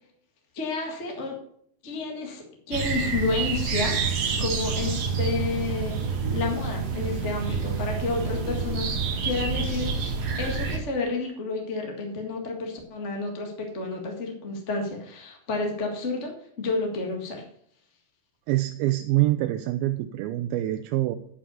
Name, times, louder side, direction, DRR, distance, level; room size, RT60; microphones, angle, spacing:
voice 1, 0.5-1.3 1.8-8.9 9.2-9.9 10.4-17.4, left 3 dB, 35° left, 1 dB, 1.1 m, -30 dB
sound 1, 2.7-10.8, right 5 dB, 55° right, 2.6 m, -28 dB
voice 2, 18.5-21.2, right 16 dB, 85° right, 8 dB, 2.4 m, -25 dB
10.0 x 5.6 x 6.8 m, 0.65 s
omnidirectional pair, 4.2 m